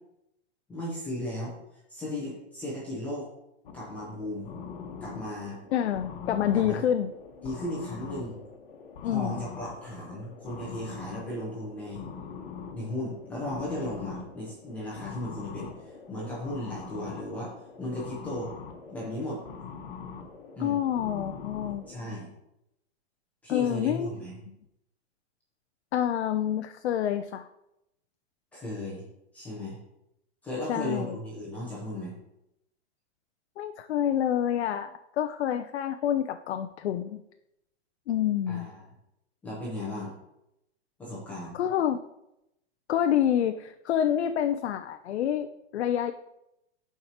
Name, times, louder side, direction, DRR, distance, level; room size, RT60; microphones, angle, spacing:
voice 1, 0.7-1.6 1.9-3.3 3.7-4.5 5.0-5.6 6.5-6.8 7.4-8.4 9.1-12.1 12.7-18.5 18.9-19.4 20.6-20.8 21.9-22.3 23.4-24.4 28.5-29.0 29.3-29.8 30.4-32.1 38.5-38.8 39.4-40.1 41.0-41.6, left 1 dB, 5° left, -7 dB, 0.8 m, -36 dB
sound 1, 3.7-22.0, left 5 dB, 50° left, 1.2 m, -43 dB
voice 2, 5.7-7.1 9.0-9.4 20.6-21.8 23.5-24.1 25.9-27.5 30.7-31.2 33.6-37.2 38.1-38.7 41.5-42.0 42.9-46.1, left 10 dB, 75° left, 8 dB, 0.5 m, -27 dB
12.0 x 4.7 x 2.9 m, 0.85 s
hypercardioid pair, 175°, 33 cm